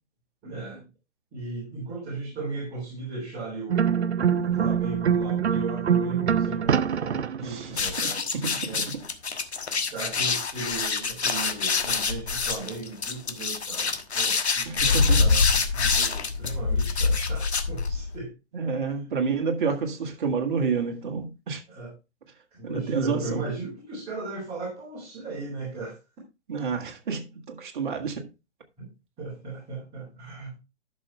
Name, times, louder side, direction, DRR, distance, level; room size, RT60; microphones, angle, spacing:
voice 1, 0.4-0.9 1.3-8.2 8.7-8.9 9.7-18.3 21.7-21.9 22.5-26.0 28.8-28.9 29.2-30.5, right 3 dB, 20° right, 3.5 m, -37 dB
sound 1, 3.7-7.7, right 7 dB, 70° right, 0.6 m, -24 dB
voice 2, 7.4-9.1 14.7-15.3 18.5-21.6 22.6-23.5 26.5-28.3, right 5 dB, 45° right, 1.9 m, -29 dB
sound 2, 7.7-18.2, left 4 dB, 65° left, 1.4 m, -25 dB
11.0 x 6.5 x 3.2 m
figure-of-eight pair, 120°, 35 cm